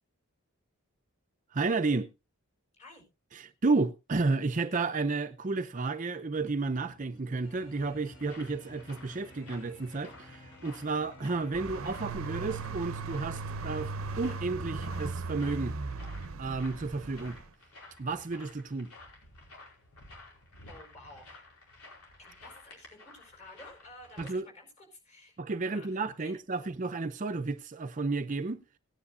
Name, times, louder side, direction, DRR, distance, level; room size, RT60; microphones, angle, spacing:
voice 1, 1.5-2.1 3.3-15.8 16.4-17.4 18.0-18.9 24.2-24.5 25.4-28.6, right 3 dB, 35° right, 0.5 m, -32 dB
voice 2, 2.7-3.1 20.7-21.4 22.2-26.7, left 2 dB, 30° left, 4.6 m, -53 dB
sound 1, 6.3-14.5, left 1 dB, 55° left, 5.8 m, -53 dB
sound 2, 7.6-24.4, left 2 dB, 85° left, 4.9 m, -54 dB
sound 3, 11.5-17.5, right 3 dB, 70° right, 0.6 m, -37 dB
18.0 x 9.8 x 2.4 m
head